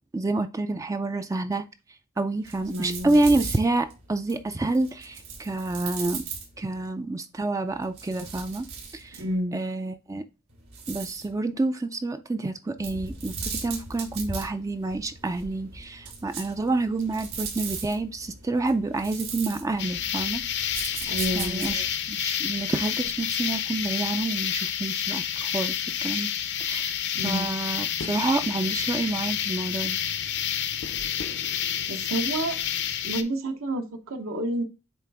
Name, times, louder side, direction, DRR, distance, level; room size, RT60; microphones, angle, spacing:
voice 1, 0.1-1.6 2.2-6.2 6.6-8.7 8.9-9.2 9.5-10.2 10.9-20.4 20.9-26.3 26.6-26.9 27.2-30.0, right 2 dB, 15° right, 0.3 m, -28 dB
sound 1, 2.4-6.9 7.7-9.4 10.5-11.3 12.8-21.9, right 5 dB, 90° right, 2.9 m, -39 dB
voice 2, 2.6-3.2 9.2-9.6 21.1-21.8 27.1-27.5 31.9-32.6 33.0-34.6, right 1 dB, 70° right, 1.0 m, -30 dB
sound 2, 19.8-33.2, left 9 dB, 55° left, 0.6 m, -29 dB
8.3 x 3.3 x 3.5 m
head